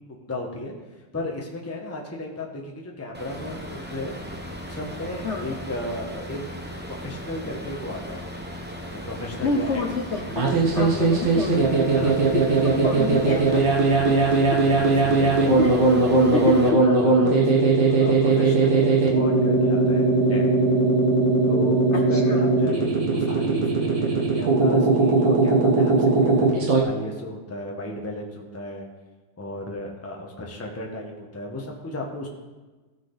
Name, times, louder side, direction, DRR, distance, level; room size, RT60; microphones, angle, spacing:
voice 1, 0.1-0.7 1.1-4.1 4.6-6.4 6.9-8.3 8.9-9.8 10.9-11.1 11.9-13.0 13.5-14.5 14.8-15.5 15.9-20.5 21.5-28.9 29.4-32.3, left 1 dB, 10° left, 0 dB, 1.1 m, -34 dB
sound 1, 3.1-16.7, equal, 10° right, 0.6 m, -37 dB
voice 2, 5.2-5.6 9.4-12.1 12.8-13.6 14.1-14.2 14.5-14.6 15.6-15.7 16.3-16.8 18.3-18.6 21.9-22.4, left 4 dB, 65° left, 3 dB, 0.6 m, -28 dB
sound 2, 10.3-26.8, right 3 dB, 70° right, 2.1 m, -19 dB
16.0 x 6.1 x 4.0 m, 1.2 s
omnidirectional pair, 2.1 m